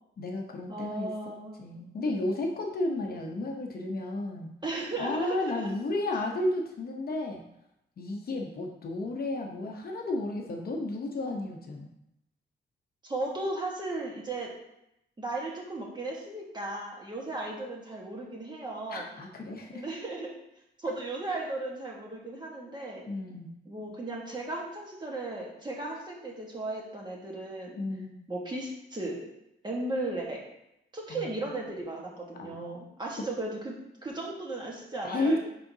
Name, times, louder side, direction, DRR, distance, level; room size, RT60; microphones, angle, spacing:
voice 1, 0.2-4.5 5.0-7.4 8.0-11.9 18.9-19.8 23.1-23.5 27.8-28.2 31.1-31.3 32.4-32.8 35.0-35.4, left 2 dB, 50° left, 1 dB, 0.8 m, -33 dB
voice 2, 0.7-1.6 4.6-5.7 13.0-14.5 15.2-19.1 19.7-20.3 20.8-23.1 23.7-27.8 28.3-29.2 29.6-30.4 30.9-33.8 34.0-35.4, right 2 dB, 20° right, -2 dB, 1.3 m, -36 dB
10.5 x 3.8 x 2.7 m, 0.83 s
wide cardioid pair, 175°, 21 cm